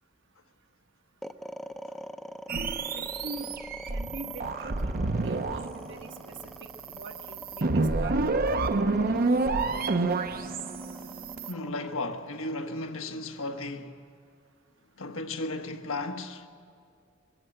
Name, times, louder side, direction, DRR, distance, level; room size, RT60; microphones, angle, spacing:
sound 1, 1.2-13.5, equal, ahead, 0.6 m, -44 dB
sound 2, 2.5-11.5, right 3 dB, 45° right, 0.7 m, -29 dB
voice 1, 2.9-3.6 3.9-8.2 8.5-10.2, right 2 dB, 65° right, 1.2 m, -44 dB
voice 2, 11.5-13.9 15.0-16.5, left 2 dB, 85° left, 1.4 m, -35 dB
24.0 x 15.0 x 7.8 m
head